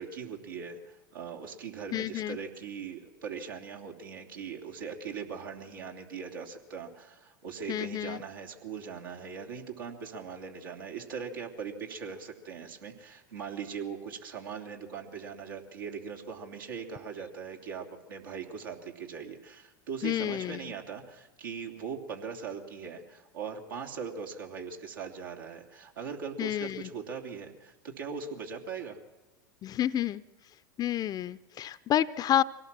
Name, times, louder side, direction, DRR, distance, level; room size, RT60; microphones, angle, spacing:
voice 1, 0.0-29.0, right 6 dB, 80° right, 1 dB, 3.1 m, -40 dB
voice 2, 1.9-2.4 7.7-8.2 20.0-20.6 26.4-26.9 29.6-30.2 30.8-32.4, left 11 dB, 35° left, 16 dB, 0.6 m, -29 dB
24.0 x 17.5 x 7.5 m, 1.1 s
hypercardioid pair, 90°, 11 cm